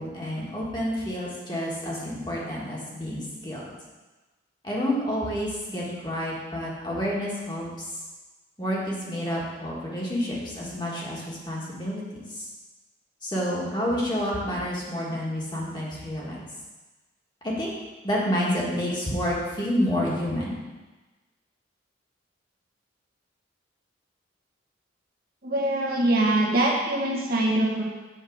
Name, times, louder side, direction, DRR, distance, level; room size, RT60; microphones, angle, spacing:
voice 1, 0.0-3.6 4.6-8.0 8.6-12.5 13.2-16.4 17.4-17.7 18.0-20.5, equal, 25° left, -5 dB, 1.7 m, -29 dB
voice 2, 25.4-27.8, right 1 dB, 50° right, -2 dB, 1.4 m, -23 dB
7.5 x 4.7 x 6.3 m, 1.2 s
head